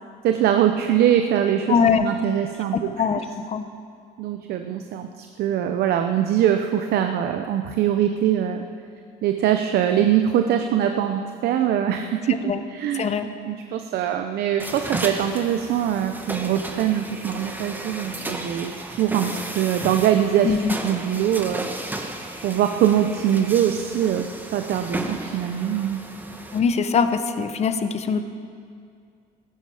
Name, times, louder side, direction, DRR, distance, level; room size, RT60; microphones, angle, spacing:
voice 1, 0.2-2.9 4.2-8.6 9.2-12.4 12.7-13.1 13.5-20.6 20.8-21.6 22.4-24.3 24.5-26.0, right 10 dB, 70° right, 6 dB, 0.8 m, -22 dB
voice 2, 1.7-2.0 2.9-3.7 12.4-12.6 12.9-13.3 20.4-20.7 26.5-28.2, left 6 dB, 40° left, 9 dB, 1.0 m, -22 dB
sound 1, 14.6-26.6, right 2 dB, 10° right, 1.4 m, -34 dB
17.0 x 15.0 x 5.0 m, 2.3 s
cardioid pair, 110°, 17 cm